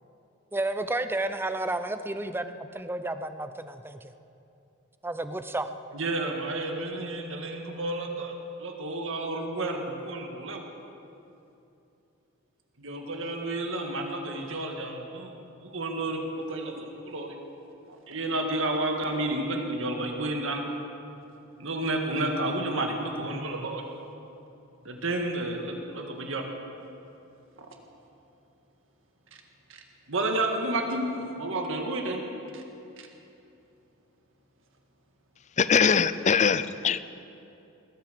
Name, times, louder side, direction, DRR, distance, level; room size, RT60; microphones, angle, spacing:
voice 1, 0.5-4.1 5.0-5.7, right 2 dB, 10° right, 10 dB, 0.6 m, -31 dB
voice 2, 5.9-10.6 12.8-17.4 17.9-20.6 21.6-23.8 24.8-26.4 27.6-27.7 29.7-32.2 32.5-32.6 33.0-33.1, right 2 dB, 70° right, 3 dB, 1.8 m, -31 dB
voice 3, 35.6-37.0, left 6 dB, 35° left, 15 dB, 0.5 m, -22 dB
20.0 x 9.4 x 6.8 m, 2.8 s
head